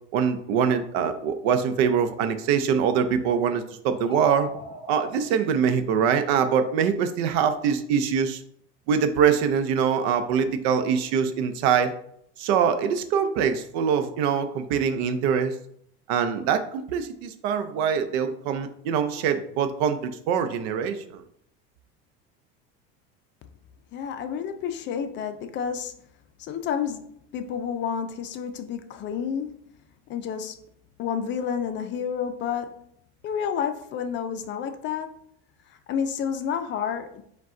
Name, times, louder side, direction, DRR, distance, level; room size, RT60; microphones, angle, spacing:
voice 1, 0.1-4.5 4.9-8.4 8.9-11.9 12.4-15.5 16.1-21.2, right 7 dB, 80° right, 0.6 m, -24 dB
sound 1, 4.0-5.2, left 2 dB, 20° right, 1.2 m, -37 dB
voice 2, 23.9-25.9 26.4-29.5 30.1-30.6 31.0-32.9 33.2-35.2 35.7-37.2, left 7 dB, 35° left, 0.4 m, -30 dB
4.9 x 2.3 x 3.7 m
supercardioid pair, 130°, 32 cm